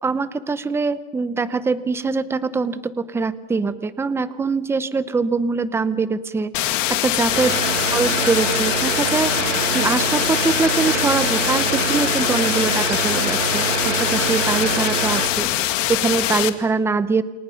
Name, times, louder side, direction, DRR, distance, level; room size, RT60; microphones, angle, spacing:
voice 1, 0.0-7.6 7.9-15.5 15.9-17.2, right 4 dB, 5° right, 14 dB, 0.7 m, -23 dB
sound 1, 6.5-16.5, left 14 dB, 75° left, 2.0 m, -23 dB
sound 2, 7.3-15.3, right 9 dB, 70° right, 2.5 m, -26 dB
28.5 x 28.5 x 5.8 m, 1.2 s
supercardioid pair, 145°, 38 cm